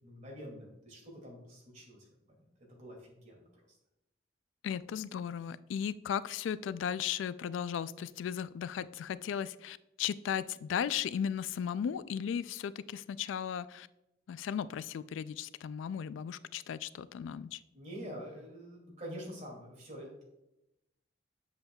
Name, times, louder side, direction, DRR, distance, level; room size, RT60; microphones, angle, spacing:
voice 1, 0.0-2.1 2.7-3.4 17.7-20.2, equal, 40° right, -1 dB, 2.4 m, -46 dB
voice 2, 4.6-13.9 14.3-17.6, left 8 dB, 90° left, 17 dB, 0.3 m, -36 dB
7.7 x 7.1 x 2.3 m, 0.89 s
head